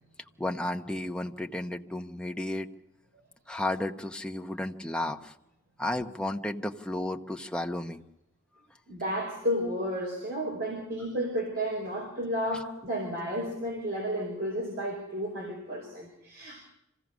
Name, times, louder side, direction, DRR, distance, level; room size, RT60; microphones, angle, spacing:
voice 1, 0.4-2.7 3.5-5.3 5.8-8.0, left 1 dB, 5° left, 4 dB, 0.9 m, -33 dB
voice 2, 8.9-16.6, equal, 55° right, 0 dB, 4.8 m, -32 dB
26.5 x 16.5 x 6.2 m, 0.83 s
head